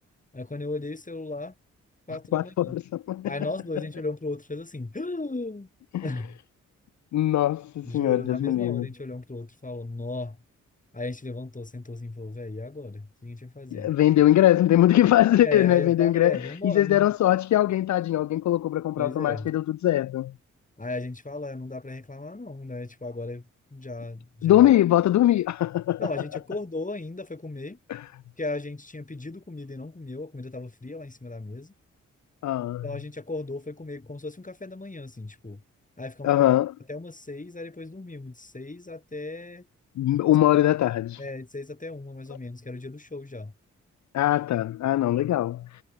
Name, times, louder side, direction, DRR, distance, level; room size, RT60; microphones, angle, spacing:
voice 1, 0.3-1.5 2.1-2.8 3.2-5.7 6.0-6.4 7.8-10.4 10.9-13.9 15.4-17.1 19.0-19.5 20.8-24.7 26.0-27.8 28.4-31.7 32.8-35.6 36.0-36.4 36.9-39.6 40.5-40.7 41.2-43.5, left 2 dB, 25° left, 6.4 m, -36 dB
voice 2, 2.3-3.3 5.9-6.1 7.1-8.9 13.7-20.3 24.4-26.1 27.9-28.1 32.4-32.8 36.2-36.7 40.0-41.2 44.1-45.8, left 13 dB, 60° left, 0.5 m, -22 dB
supercardioid pair, 45°, 32 cm